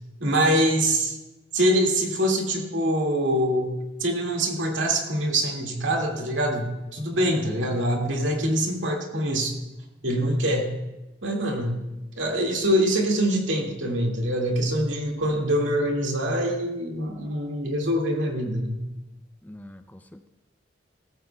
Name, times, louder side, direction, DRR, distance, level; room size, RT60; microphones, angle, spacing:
voice 1, 0.2-1.2 1.5-6.7 6.9-9.6 10.0-10.7 11.2-11.8 12.2-18.8, right 1 dB, 90° right, 1 dB, 2.1 m, -24 dB
voice 2, 19.4-20.3, left 1 dB, 10° left, 9 dB, 0.4 m, -44 dB
16.5 x 14.5 x 2.3 m, 1.0 s
head